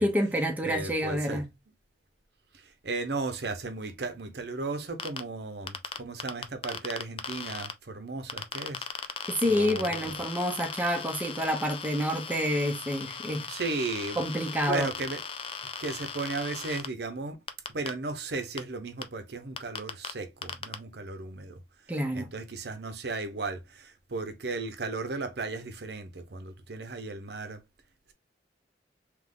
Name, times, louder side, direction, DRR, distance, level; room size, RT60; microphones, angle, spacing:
voice 1, 0.0-1.4 9.3-13.5 14.2-14.9 21.9-22.3, equal, 10° right, 0.8 m, -28 dB
voice 2, 0.6-1.4 2.5-8.9 9.4-10.2 13.5-14.2 14.7-15.2 15.8-17.4 17.7-21.6 22.1-27.6, right 3 dB, 65° right, 0.8 m, -35 dB
sound 1, 5.0-5.2 5.7-7.7 8.3-16.9 17.5-17.9 18.6-18.7 19.0-19.1 19.6-20.1 20.4-20.7, left 6 dB, 30° left, 0.4 m, -38 dB
3.6 x 3.0 x 3.6 m
head